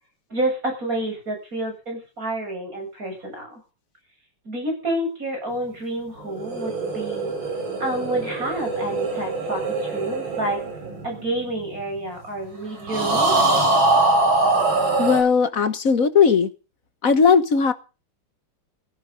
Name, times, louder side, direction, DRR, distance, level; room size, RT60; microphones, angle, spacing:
voice 1, 0.3-3.5 4.5-7.3 7.8-10.6 11.0-13.4, right 1 dB, 40° right, 2 dB, 8.6 m, -29 dB
sound 1, 6.2-11.8 12.9-15.2, right 2 dB, 65° right, 5.0 m, -23 dB
voice 2, 15.0-16.5 17.0-17.7, left 6 dB, 45° left, 11 dB, 1.4 m, -17 dB
15.5 x 15.5 x 5.2 m, 0.34 s
omnidirectional pair, 2.4 m